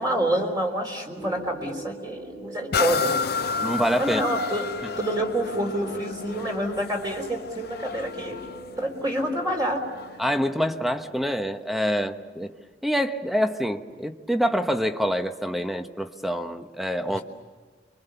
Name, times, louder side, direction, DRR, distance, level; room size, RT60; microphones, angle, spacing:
voice 1, 0.0-3.1 4.0-4.7 5.0-8.4 8.8-9.8 17.1-17.2, right 1 dB, 25° right, 1 dB, 3.9 m, -27 dB
sound 1, 1.0-13.1 13.4-13.5, right 2 dB, 75° right, 7.7 m, -45 dB
sound 2, 2.7-10.3 10.9-11.0, left 5 dB, 60° left, 0.7 m, -31 dB
voice 2, 3.6-4.2 4.8-4.9 10.2-12.5 12.8-17.2, equal, ahead, 7 dB, 1.0 m, -26 dB
30.0 x 24.0 x 7.0 m, 1.5 s
head